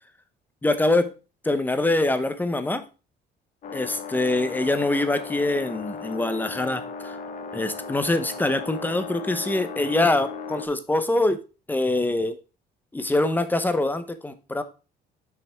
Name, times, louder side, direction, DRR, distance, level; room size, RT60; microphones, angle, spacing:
voice 1, 0.6-1.1 1.4-2.8 3.7-7.2 7.5-11.4 11.7-12.4 12.9-14.6, left 2 dB, 10° left, 0.7 m, -24 dB
sound 1, 3.6-10.7, left 5 dB, 50° left, 1.0 m, -36 dB
5.8 x 5.7 x 3.5 m
cardioid pair, 110°, 17 cm